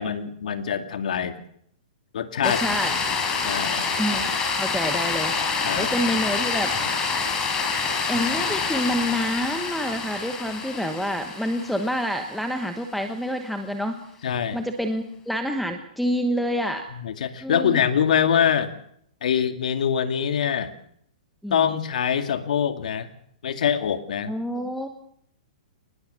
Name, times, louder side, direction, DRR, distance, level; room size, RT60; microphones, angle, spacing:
voice 1, 0.0-1.3 2.1-2.6 3.4-3.9 5.6-5.9 14.2-14.6 17.0-18.8 19.2-20.7 21.5-23.1 23.4-24.3, left 8 dB, 65° left, 8 dB, 2.4 m, -24 dB
sound 1, 2.4-12.7, left 5 dB, 15° left, 4.6 m, -27 dB
voice 2, 2.4-2.9 4.0-4.2 4.6-5.3 5.8-6.7 8.1-14.0 14.5-16.8 17.4-17.8 21.4-21.7 24.3-24.9, equal, ahead, 6 dB, 1.1 m, -27 dB
23.0 x 20.5 x 7.0 m, 0.69 s
hypercardioid pair, 165°, 4 cm